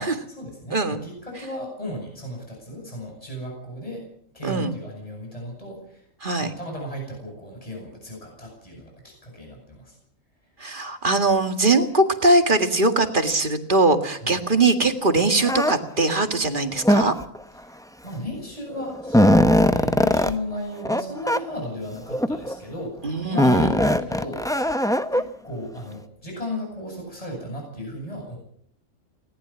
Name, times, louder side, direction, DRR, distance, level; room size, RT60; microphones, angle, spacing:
voice 1, 0.0-4.0 4.3-6.0 6.4-9.9 14.2-14.4 17.6-23.0 23.2-28.4, left 1 dB, 25° left, 0 dB, 8.2 m, -35 dB
voice 2, 4.4-4.7 6.2-6.5 10.6-17.1 23.0-23.7, right 2 dB, 40° right, 7 dB, 2.1 m, -21 dB
sound 1, 15.5-15.7 16.8-17.4 18.3-18.4 18.8-20.3 20.8-21.0 21.3-21.4 22.1-22.5 23.4-25.2, left 1 dB, 5° left, 0.7 m, -19 dB
19.5 x 18.5 x 7.2 m, 0.64 s
omnidirectional pair, 1.4 m